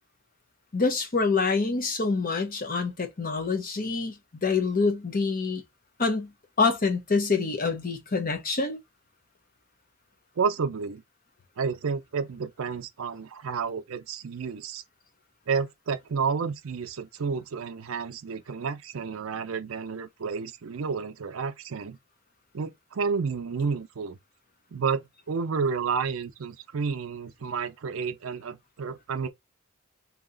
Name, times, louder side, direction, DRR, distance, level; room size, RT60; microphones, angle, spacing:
voice 1, 0.7-4.2 4.4-5.6 6.0-6.3 6.6-8.8, left 4 dB, 45° left, 0.8 m, -26 dB
voice 2, 10.4-11.0 11.6-14.8 15.5-22.0 22.5-24.2 24.7-29.3, right 5 dB, 80° right, 0.5 m, -30 dB
3.0 x 2.8 x 3.9 m
head